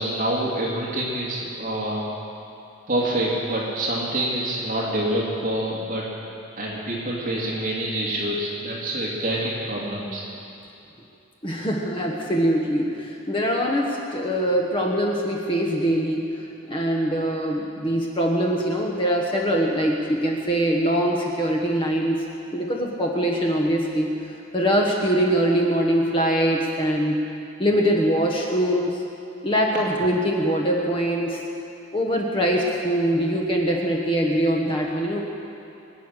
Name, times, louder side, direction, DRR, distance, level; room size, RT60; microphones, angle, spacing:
voice 1, 0.0-2.1 2.9-6.1 6.6-10.2, right 1 dB, 40° right, -5 dB, 2.4 m, -26 dB
voice 2, 11.4-16.3 16.7-22.2 22.5-24.1 24.5-27.2 27.6-29.0 29.4-31.4 31.9-35.3, equal, 25° left, 0 dB, 1.2 m, -23 dB
23.5 x 9.3 x 6.6 m, 2.8 s
head